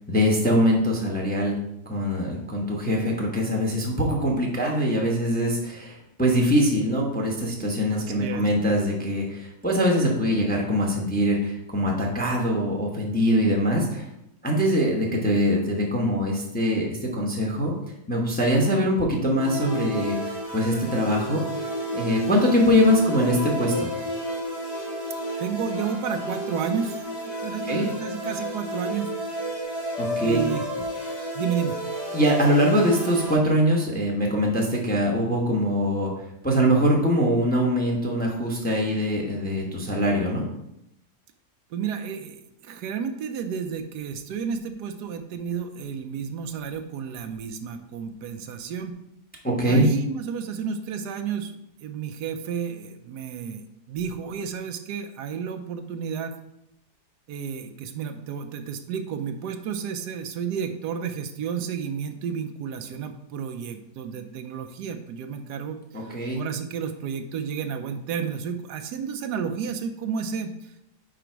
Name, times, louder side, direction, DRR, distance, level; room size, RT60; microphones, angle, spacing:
voice 1, 0.1-1.6 1.9-14.0 14.4-17.7 18.1-20.2 20.5-21.4 21.9-23.9 27.7-27.8 30.0-30.4 32.1-36.1 36.4-40.4 49.4-49.8 65.9-66.4, equal, 5° left, -1 dB, 0.8 m, -23 dB
voice 2, 7.9-8.5 25.4-29.1 30.2-30.7 31.3-31.8 41.7-48.9 49.6-56.4 57.3-70.7, right 7 dB, 80° right, 7 dB, 1.2 m, -32 dB
sound 1, 19.4-33.3, equal, 75° left, 2.1 m, -31 dB
5.0 x 4.8 x 4.5 m, 0.80 s
omnidirectional pair, 1.8 m